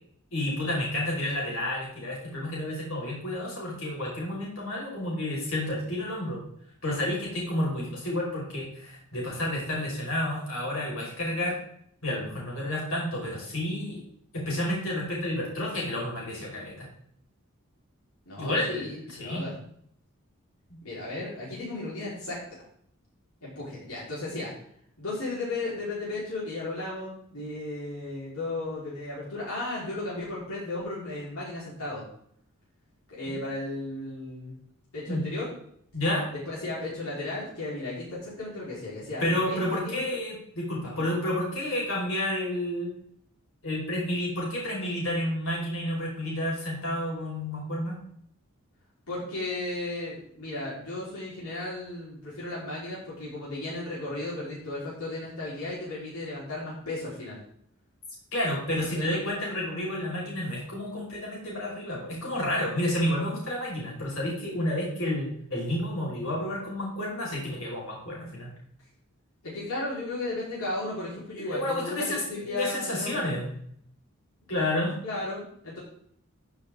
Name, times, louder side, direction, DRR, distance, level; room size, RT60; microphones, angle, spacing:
voice 1, 0.3-6.4 6.8-11.6 12.0-14.0 14.3-16.9 18.4-19.4 20.7-20.8 33.3-33.4 35.0-35.2 35.9-36.3 39.2-42.9 43.6-48.0 58.3-68.5 71.4-73.6 74.5-74.9, left 1 dB, 70° left, -4 dB, 5.5 m, -30 dB
voice 2, 18.3-19.5 20.8-22.6 23.4-24.5 25.0-32.0 33.1-34.5 34.9-35.5 36.5-40.0 40.9-41.0 49.1-57.4 58.9-59.1 69.4-73.4 75.0-75.8, left 2 dB, 90° left, -8 dB, 4.7 m, -35 dB
15.0 x 7.1 x 3.9 m, 0.67 s
head